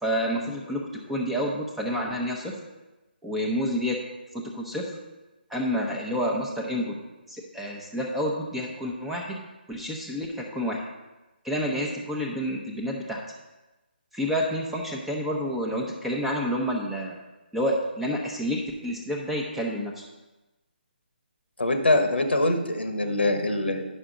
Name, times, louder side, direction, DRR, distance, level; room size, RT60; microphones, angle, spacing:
voice 1, 0.0-2.5 3.2-4.0 4.3-4.9 5.5-7.0 7.3-9.4 9.7-10.8 11.4-13.2 14.1-17.2 17.5-20.0, equal, 5° right, -2 dB, 0.8 m, -29 dB
voice 2, 21.6-23.9, left 2 dB, 80° left, 6 dB, 1.1 m, -23 dB
9.9 x 5.8 x 3.8 m, 1.1 s
figure-of-eight pair, 145°, 6 cm